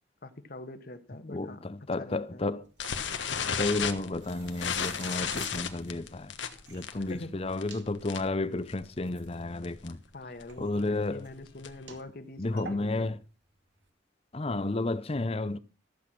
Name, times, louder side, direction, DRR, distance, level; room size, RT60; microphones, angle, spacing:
voice 1, 0.2-1.6 2.0-2.5 7.1-7.5 10.1-13.1, left 2 dB, 55° left, 1.3 m, -44 dB
voice 2, 1.3-2.7 3.6-6.3 6.7-10.0 10.6-11.2 12.4-13.2 14.3-15.6, left 2 dB, 30° left, 0.6 m, -32 dB
sound 1, 1.9-13.9, right 5 dB, 70° right, 2.4 m, -52 dB
sound 2, 2.8-8.4 8.7-9.0 9.2-9.3 9.6-9.9 10.4-11.9, left 7 dB, 80° left, 1.5 m, -34 dB
14.0 x 8.1 x 6.0 m
head